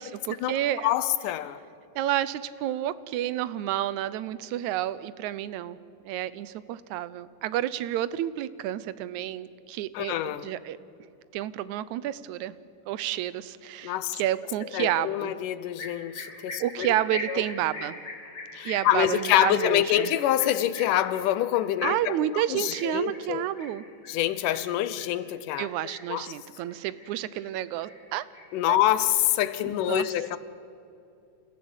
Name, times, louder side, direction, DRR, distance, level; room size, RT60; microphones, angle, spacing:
voice 1, 0.0-0.9 2.0-5.8 6.0-10.8 11.3-12.6 12.9-15.3 16.6-18.0 18.7-20.1 21.8-23.9 25.6-28.3 28.7-28.8 29.6-30.1, right 13 dB, 75° right, 17 dB, 1.9 m, -30 dB
voice 2, 0.8-1.6 9.9-10.5 13.8-14.2 14.7-16.9 17.3-17.4 18.5-23.4 24.1-25.7 26.1-26.3 28.5-30.4, left 13 dB, 85° left, 14 dB, 2.4 m, -26 dB
sound 1, 15.8-25.1 25.5-26.2 26.6-27.5 27.8-29.1, left 2 dB, 30° left, 3.5 m, -41 dB
28.5 x 14.5 x 8.0 m, 2.6 s
omnidirectional pair, 3.7 m